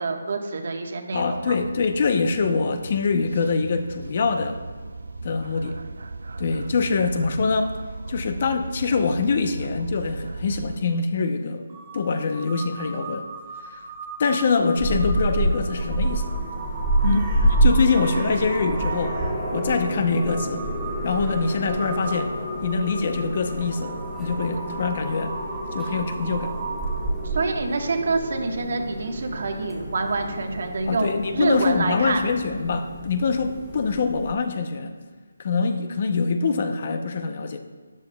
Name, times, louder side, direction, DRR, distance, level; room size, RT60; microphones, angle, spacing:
voice 1, 0.0-1.5 17.1-17.3 27.2-32.2, right 3 dB, 55° right, 4 dB, 1.3 m, -27 dB
voice 2, 1.1-4.6 5.2-5.8 6.4-7.8 8.1-11.6 11.9-13.3 13.6-13.8 14.2-16.3 17.0-17.3 17.6-19.2 19.5-20.7 21.0-22.3 22.6-25.3 25.7-26.5 30.9-34.9 35.4-37.6, left 4 dB, 40° left, 7 dB, 0.7 m, -24 dB
sound 1, 1.1-10.8, right 3 dB, 70° right, 0.5 m, -37 dB
Crow, 11.7-27.2, right 3 dB, 25° right, 1.7 m, -36 dB
sound 2, 14.8-34.3, right 1 dB, ahead, 1.8 m, -28 dB
12.5 x 9.5 x 2.3 m, 1.4 s
figure-of-eight pair, 165°, 0 cm